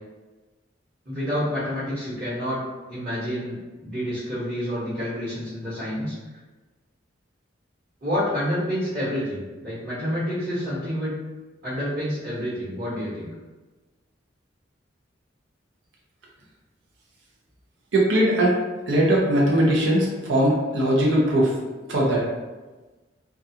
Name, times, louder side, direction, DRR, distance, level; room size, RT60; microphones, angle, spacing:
voice 1, 1.0-2.6 2.9-6.1 8.0-11.1 11.6-13.3, equal, 40° right, -11 dB, 1.1 m, -28 dB
voice 2, 17.9-18.5 18.9-21.5 21.9-22.3, right 1 dB, 75° right, -3 dB, 0.5 m, -20 dB
2.3 x 2.3 x 2.7 m, 1.2 s
head